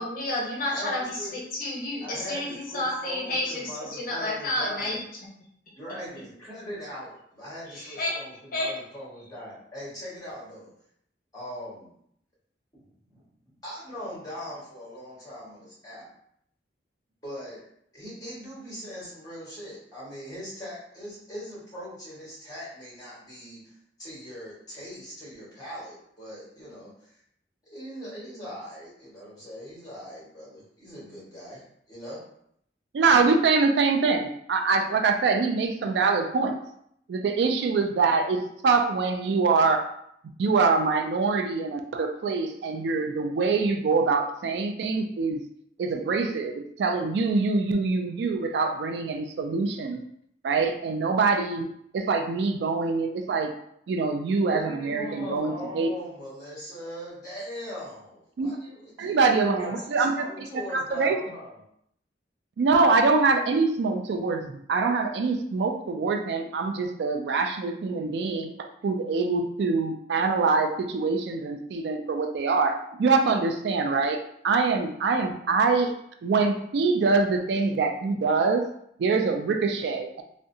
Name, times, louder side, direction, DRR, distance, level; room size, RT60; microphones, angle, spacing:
voice 1, 0.0-5.0 7.7-8.2 8.5-8.8, left 1 dB, 50° left, -4 dB, 0.8 m, -30 dB
voice 2, 0.7-1.3 2.0-5.0 5.7-10.7 11.3-11.9 12.8-13.2 13.6-16.1 17.2-17.6 17.9-27.2 27.7-31.6 31.9-32.2 54.4-61.6, equal, 20° left, -7 dB, 1.4 m, -40 dB
voice 3, 32.9-36.6 37.1-39.8 40.4-45.4 45.8-50.0 50.4-51.7 51.9-53.5 53.9-55.9 58.4-58.5 59.0-60.1 60.7-61.2 62.6-75.9 76.2-78.7 79.0-80.2, right 4 dB, 70° right, 6 dB, 0.3 m, -24 dB
3.6 x 2.1 x 2.7 m, 0.72 s
head